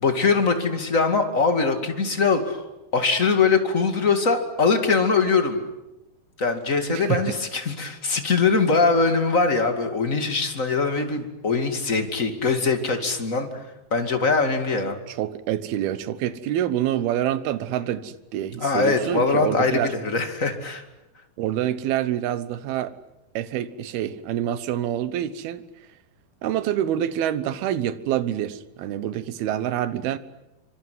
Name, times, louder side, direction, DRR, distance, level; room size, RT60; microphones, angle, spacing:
voice 1, 0.0-2.6 2.9-5.6 6.4-13.5 13.9-15.0 18.6-20.8, left 4 dB, 25° left, 6 dB, 2.0 m, -22 dB
voice 2, 6.9-7.4 15.1-19.9 21.4-22.9 23.3-25.7 26.4-30.2, right 11 dB, 80° right, 14 dB, 3.0 m, -26 dB
25.5 x 24.5 x 9.5 m, 0.93 s
omnidirectional pair, 4.4 m